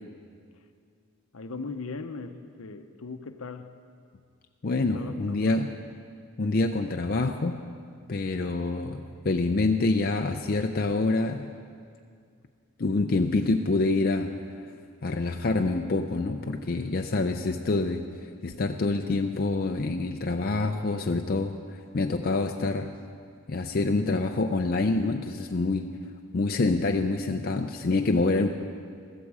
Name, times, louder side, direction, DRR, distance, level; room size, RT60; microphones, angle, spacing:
voice 1, 1.3-3.8 4.9-5.6, left 4 dB, 70° left, 9 dB, 0.7 m, -39 dB
voice 2, 4.6-5.7 6.4-7.6 8.1-11.5 12.8-14.3 14.6-14.7 15.0-22.9 23.5-26.0 26.3-28.5, left 3 dB, 40° left, 4 dB, 0.5 m, -26 dB
15.5 x 13.5 x 4.8 m, 2.2 s
head